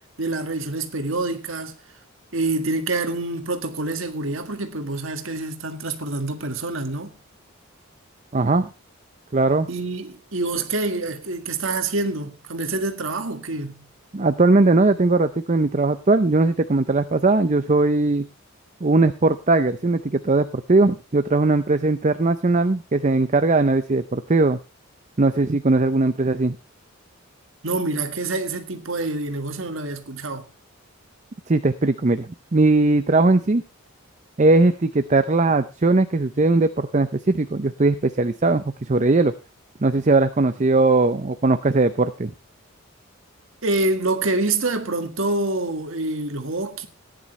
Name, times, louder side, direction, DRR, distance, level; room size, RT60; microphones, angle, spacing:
voice 1, 0.2-1.8 2.3-7.1 9.7-13.9 27.6-30.5 43.6-46.9, right 2 dB, 70° right, 1.8 m, -26 dB
voice 2, 8.3-8.7 9.3-9.7 14.1-18.3 18.8-24.6 25.2-26.6 31.5-33.6 34.4-39.3 39.8-42.3, right 3 dB, 35° right, 0.6 m, -19 dB
16.5 x 10.5 x 3.3 m
head